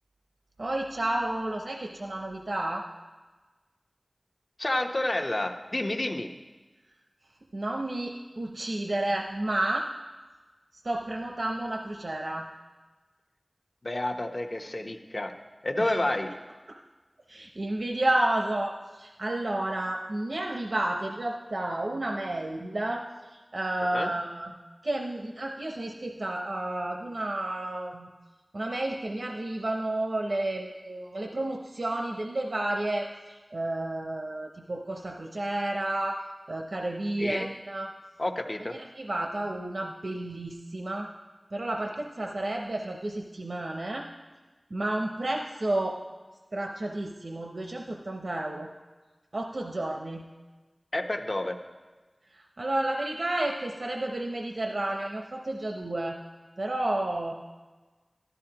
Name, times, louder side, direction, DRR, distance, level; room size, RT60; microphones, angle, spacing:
voice 1, 0.6-2.9 7.5-9.9 10.8-12.5 15.8-16.0 16.7-16.8 17.3-24.5 24.8-28.1 28.5-36.2 36.5-37.9 38.7-41.1 41.5-44.1 44.7-46.0 46.5-48.7 49.3-50.3 52.3-56.2 56.6-57.3, right 1 dB, 85° right, 2 dB, 0.7 m, -31 dB
voice 2, 4.6-6.3 13.8-15.3 15.6-16.3 23.9-24.1 37.2-37.5 38.2-38.7 50.9-51.6, left 1 dB, 50° left, 4 dB, 0.8 m, -29 dB
14.5 x 12.0 x 2.9 m, 1.3 s
wide cardioid pair, 55°, 0 cm